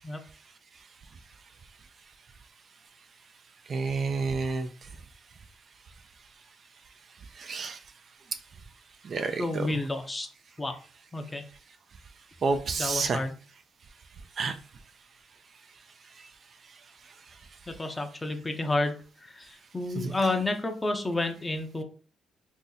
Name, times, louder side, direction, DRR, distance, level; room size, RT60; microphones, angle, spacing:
voice 1, 3.7-4.7 7.3-7.8 9.0-9.7 12.4-13.2 14.4-14.6 20.0-20.1, right 4 dB, 50° right, 8 dB, 0.4 m, -29 dB
voice 2, 9.4-10.3 10.6-10.8 11.1-11.4 12.8-13.3 17.7-21.8, left 2 dB, 20° left, 6 dB, 0.6 m, -30 dB
2.7 x 2.6 x 3.9 m, 0.40 s
cardioid pair, 90°, 0 cm